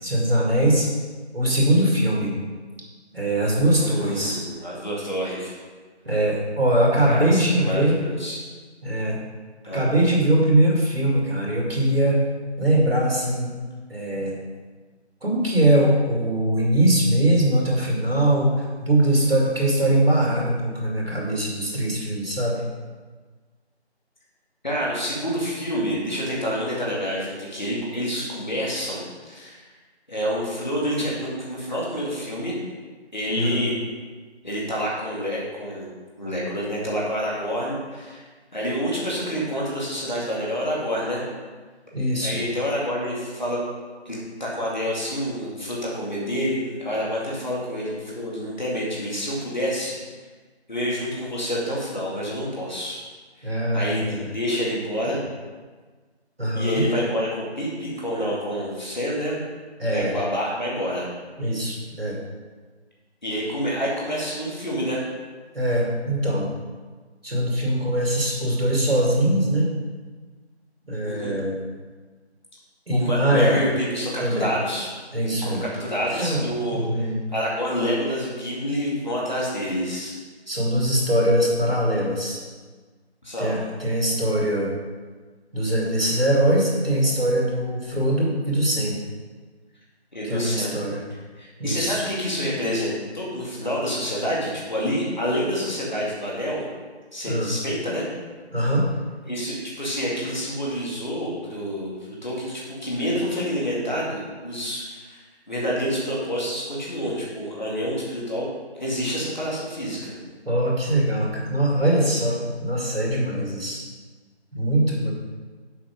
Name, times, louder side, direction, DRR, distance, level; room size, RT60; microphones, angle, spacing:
voice 1, 0.0-0.9 1.3-2.3 3.1-4.4 6.0-8.0 8.8-9.2 9.7-12.3 12.6-13.5 13.9-14.4 15.2-22.6 33.3-33.7 41.9-42.4 53.4-54.3 56.4-56.9 59.8-60.1 61.4-62.2 65.5-66.5 67.2-69.7 70.9-71.6 72.9-73.6 74.2-74.5 75.1-75.6 76.1-76.4 76.7-77.2 80.5-82.4 83.4-84.7 85.5-89.0 90.2-91.0 91.6-92.0 97.2-97.5 98.5-98.9 110.5-113.8 114.5-115.1, right 1 dB, 60° right, -3 dB, 2.3 m, -22 dB
voice 2, 3.8-5.5 7.0-8.4 9.6-9.9 24.6-29.6 30.1-32.5 33.1-33.7 34.4-35.9 36.2-38.2 38.5-41.3 42.2-43.6 44.1-50.0 50.7-53.0 53.4-55.2 56.5-59.4 59.9-61.1 63.2-65.0 71.0-71.3 72.9-74.9 75.4-80.1 83.2-83.6 90.1-90.8 91.4-96.7 97.1-98.1 99.3-105.2 105.5-108.5 108.8-110.2, equal, 40° left, -5 dB, 2.2 m, -28 dB
7.4 x 4.7 x 5.2 m, 1.4 s
figure-of-eight pair, 175°, 34 cm